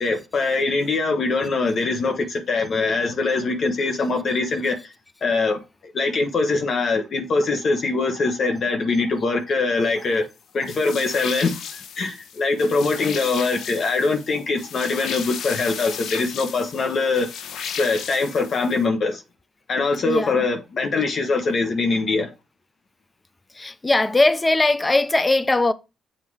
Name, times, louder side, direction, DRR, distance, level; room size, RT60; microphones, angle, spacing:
voice 1, 0.0-4.9 5.2-10.2 10.5-17.3 17.6-19.2 19.7-22.3, left 3 dB, 50° left, 1.0 m, -23 dB
sound 1, 10.7-18.8, left 7 dB, 75° left, 0.7 m, -35 dB
voice 2, 20.0-20.5 23.5-25.7, left 2 dB, 20° left, 0.5 m, -20 dB
7.4 x 2.8 x 4.7 m
cardioid pair, 90°, 0 cm